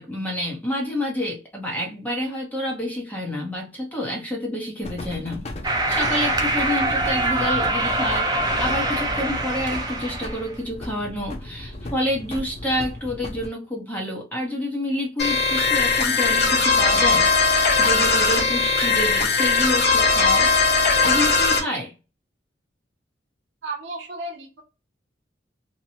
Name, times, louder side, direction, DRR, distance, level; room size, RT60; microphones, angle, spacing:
voice 1, 0.0-20.5 21.0-21.9, left 1 dB, 10° left, 0.9 m, -28 dB
sound 1, 4.8-13.5, left 1 dB, 35° left, 0.5 m, -35 dB
sound 2, 5.6-10.5, right 2 dB, 20° right, 0.5 m, -24 dB
sound 3, 15.2-21.6, left 4 dB, 55° left, 0.9 m, -19 dB
voice 2, 23.6-24.6, right 2 dB, 85° right, 0.8 m, -33 dB
2.8 x 2.2 x 2.7 m
head